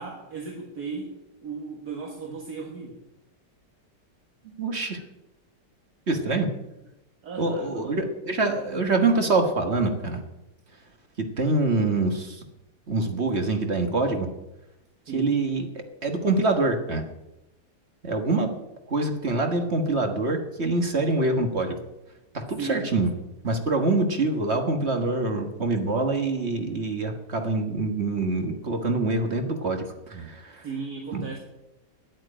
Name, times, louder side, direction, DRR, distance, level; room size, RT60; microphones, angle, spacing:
voice 1, 0.0-3.0 7.2-8.0 15.1-15.3 22.6-22.9 30.6-31.4, right 5 dB, 60° right, 1 dB, 2.0 m, -36 dB
voice 2, 4.4-5.0 6.1-6.5 7.4-10.2 11.2-12.4 12.9-14.3 15.1-17.0 18.0-18.5 18.9-21.7 22.3-23.1 23.4-30.7 31.1-31.3, right 3 dB, 40° right, 5 dB, 1.6 m, -25 dB
9.6 x 9.2 x 8.8 m, 0.93 s
omnidirectional pair, 1.9 m